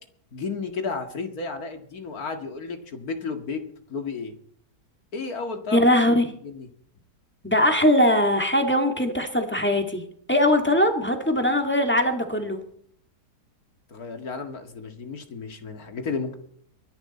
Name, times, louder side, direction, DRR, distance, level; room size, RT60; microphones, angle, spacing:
voice 1, 0.3-3.6 3.9-4.3 5.1-6.7 13.9-16.3, left 4 dB, 60° left, 6 dB, 2.4 m, -33 dB
voice 2, 5.7-6.3 7.4-10.0 10.3-12.6, left 1 dB, 5° left, 5 dB, 2.1 m, -21 dB
22.5 x 10.5 x 4.3 m, 0.62 s
omnidirectional pair, 1.8 m